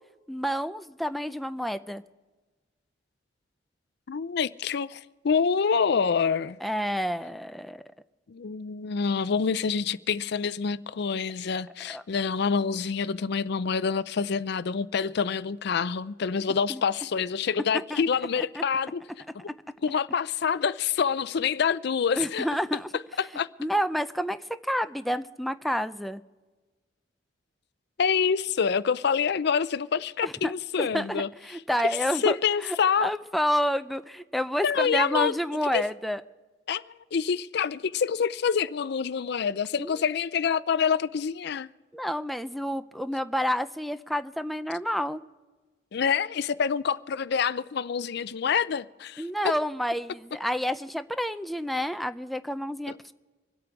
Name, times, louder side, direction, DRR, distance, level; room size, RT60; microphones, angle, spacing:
voice 1, 0.3-2.0 6.6-7.8 11.9-12.0 16.7-16.8 17.9-18.0 18.4-18.6 22.2-22.9 23.6-24.4 24.6-26.2 30.2-30.5 30.8-32.4 32.6-36.2 39.8-40.0 41.9-45.2 49.2-53.1, equal, ahead, 0.4 m, -29 dB
voice 2, 4.1-6.6 8.3-19.0 19.3-19.5 19.8-22.5 23.2-23.5 28.0-31.3 31.9-33.1 34.6-35.4 35.7-35.8 36.7-41.7 45.9-49.5 52.9-53.0, left 6 dB, 60° left, 0.5 m, -27 dB
25.5 x 8.7 x 4.7 m
head